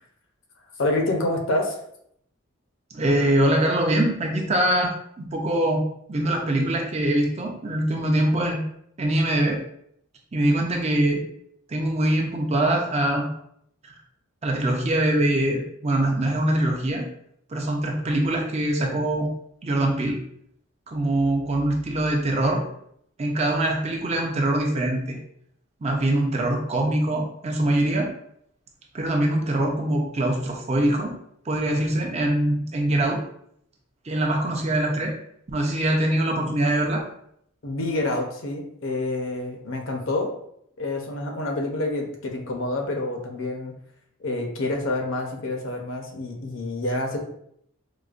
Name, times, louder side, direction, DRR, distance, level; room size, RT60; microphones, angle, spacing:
voice 1, 0.8-1.8 37.6-40.3 40.8-43.7 44.2-47.2, left 2 dB, 60° left, 2 dB, 0.6 m, -27 dB
voice 2, 2.9-5.8 6.1-8.6 9.0-9.6 10.3-11.2 11.7-13.3 14.4-17.1 17.5-19.3 19.6-20.2 20.9-22.6 23.2-25.2 25.8-28.1 28.9-31.1 31.5-33.2 34.0-35.1 35.5-37.0, right 1 dB, 30° right, 1 dB, 0.5 m, -23 dB
4.8 x 2.1 x 2.4 m, 0.71 s
head